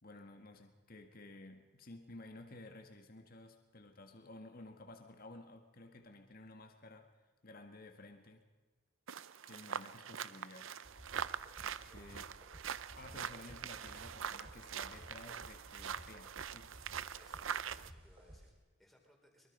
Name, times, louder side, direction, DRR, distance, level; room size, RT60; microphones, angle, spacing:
voice 1, 0.0-7.1 7.4-8.4 9.5-10.7 11.9-12.2 12.9-16.7, left 2 dB, 40° left, 5 dB, 1.8 m, -54 dB
sound 1, 9.1-17.9, right 8 dB, 65° right, 0.6 m, -43 dB
sound 2, 10.8-18.5, equal, 25° right, 3.2 m, -56 dB
voice 2, 11.9-12.2 17.2-19.5, equal, ahead, 0 dB, 4.2 m, -67 dB
24.0 x 23.0 x 5.5 m, 1.3 s
head